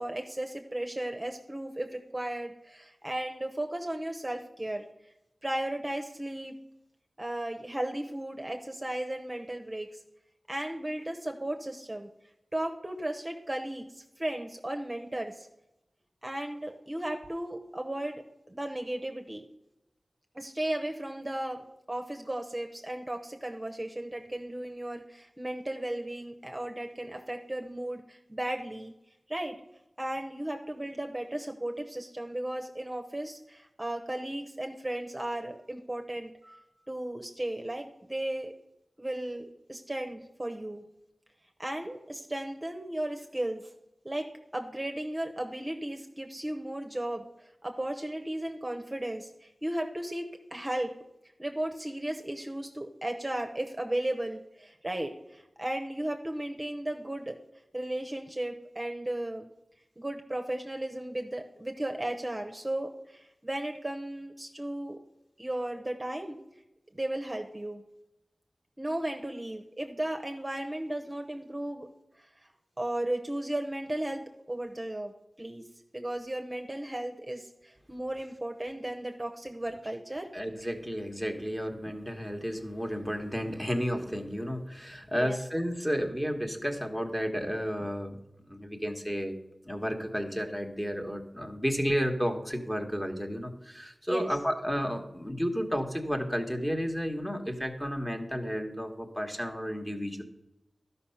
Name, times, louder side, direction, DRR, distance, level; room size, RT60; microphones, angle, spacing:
voice 1, 0.0-4.9 5.4-6.5 7.2-10.0 10.5-12.1 12.5-15.5 16.2-19.4 20.3-28.9 29.3-29.5 30.0-38.5 39.0-40.8 41.6-43.7 44.0-44.3 44.5-47.2 47.6-50.2 50.5-50.9 51.4-57.4 57.7-59.5 60.0-65.0 65.4-66.4 66.9-67.8 68.8-71.9 72.2-72.3 72.8-75.1 75.4-75.6 75.9-80.3 85.2-85.4 94.1-94.2, right 1 dB, 20° right, 3 dB, 0.8 m, -35 dB
voice 2, 80.3-88.2 88.5-89.4 89.6-100.2, equal, 10° left, 4 dB, 1.3 m, -32 dB
12.0 x 5.5 x 5.7 m, 0.89 s
wide cardioid pair, 55°, 0 cm